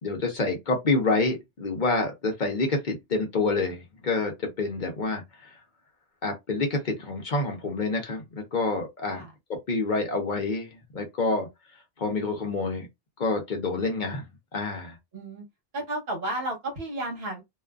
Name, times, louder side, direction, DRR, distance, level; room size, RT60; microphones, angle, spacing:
voice 1, 0.0-5.6 6.2-9.2 9.5-11.5 12.0-12.9 13.2-15.0, left 3 dB, 50° left, 0.8 m, -28 dB
voice 2, 15.1-15.4 15.7-17.4, right 1 dB, 70° right, 1.2 m, -32 dB
2.5 x 2.4 x 2.3 m
omnidirectional pair, 1.1 m